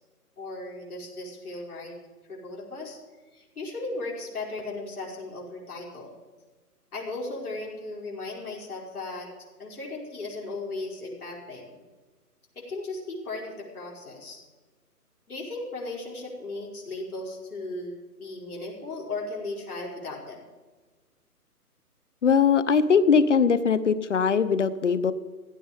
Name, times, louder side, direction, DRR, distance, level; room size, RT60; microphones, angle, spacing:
voice 1, 0.4-2.0 2.3-3.0 3.3-6.1 6.9-9.3 9.6-11.8 12.6-14.4 15.3-20.4, left 2 dB, 65° left, -2 dB, 5.4 m, -36 dB
voice 2, 22.2-25.1, left 6 dB, 50° left, 16 dB, 0.9 m, -21 dB
15.5 x 12.5 x 5.2 m, 1.3 s
hypercardioid pair, 160°, 46 cm